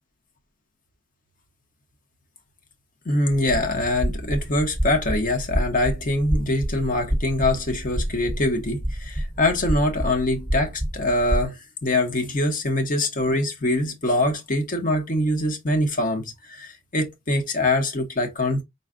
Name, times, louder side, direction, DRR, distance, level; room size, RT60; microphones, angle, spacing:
voice 1, 3.0-18.6, left 1 dB, 45° left, 1.0 m, -24 dB
sound 1, 3.3-11.5, equal, ahead, 0.9 m, -28 dB
5.5 x 2.3 x 3.7 m
head